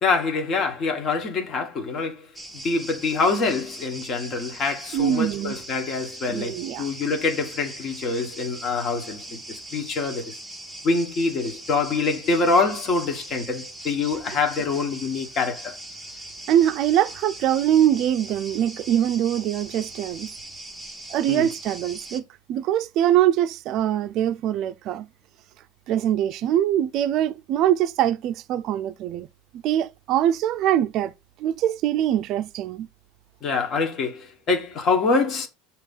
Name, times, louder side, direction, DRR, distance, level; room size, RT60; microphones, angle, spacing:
voice 1, 0.0-2.3 2.6-10.4 10.8-15.8 21.3-21.5 33.4-35.5, left 4 dB, 35° left, 1.5 m, -25 dB
sound 1, 2.3-22.2, right 1 dB, ahead, 0.9 m, -40 dB
voice 2, 4.9-5.6 6.3-6.9 16.5-20.3 21.1-22.2 22.5-25.1 25.9-29.3 29.6-31.1 31.4-32.9, right 11 dB, 45° right, 0.5 m, -23 dB
7.4 x 3.0 x 5.4 m
supercardioid pair, 145°, 0 cm